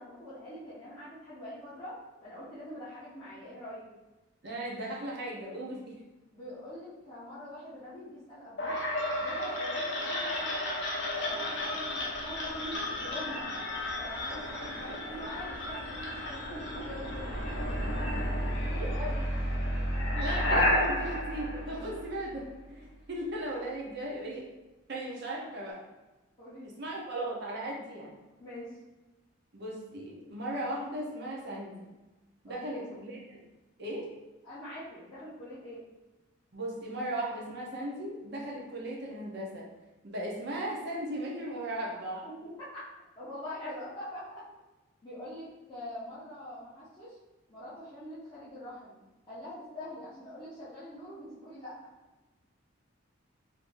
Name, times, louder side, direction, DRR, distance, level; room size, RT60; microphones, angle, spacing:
voice 1, 0.0-3.8 6.3-8.8 9.2-10.7 11.2-13.5 14.0-17.4 18.7-19.2 26.4-26.8 28.4-28.8 32.4-32.9 34.4-35.8 42.2-44.4 45.0-47.2 47.5-48.9 49.3-51.8, left 1 dB, 20° left, -14 dB, 1.0 m, -44 dB
voice 2, 4.4-6.0 18.8-19.1 20.1-24.5 24.9-25.8 26.6-28.1 29.5-31.9 32.4-33.4 33.8-34.1 36.5-39.7 40.0-42.3, right 1 dB, 55° right, -2 dB, 0.8 m, -37 dB
sound 1, 8.6-22.5, left 1 dB, 60° left, 0.7 m, -32 dB
3.7 x 2.8 x 2.6 m, 1.1 s
head